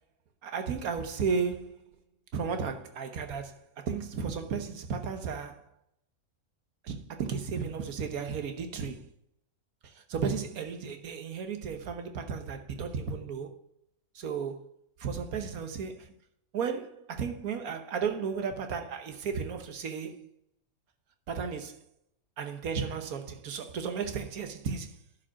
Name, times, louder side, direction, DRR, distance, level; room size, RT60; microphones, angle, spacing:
voice 1, 0.4-1.8 2.3-5.6 6.8-9.0 10.1-13.5 14.1-14.6 15.0-16.1 16.5-20.3 21.3-21.8 22.4-24.9, right 6 dB, 80° right, 1.5 m, -34 dB
11.5 x 5.1 x 5.8 m
omnidirectional pair, 1.5 m